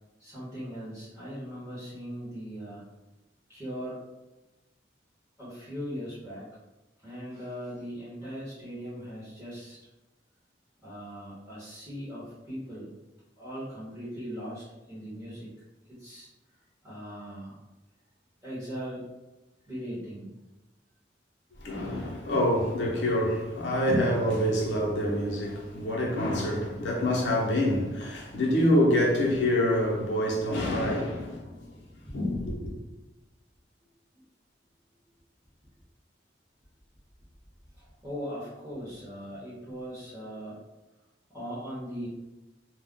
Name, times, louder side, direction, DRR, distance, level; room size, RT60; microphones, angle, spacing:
voice 1, 0.2-2.8 3.5-4.0 5.4-6.5 7.0-9.8 10.8-12.9 13.4-15.5 15.9-16.3 16.8-17.6 18.4-19.1 19.6-20.3 32.1-32.2 34.1-34.2 37.7-40.6 41.3-42.1, equal, 15° right, 0.8 m, -39 dB
voice 2, 21.6-31.9 32.1-32.8, left 1 dB, 90° left, 0.7 m, -26 dB
2.3 x 2.1 x 3.6 m
head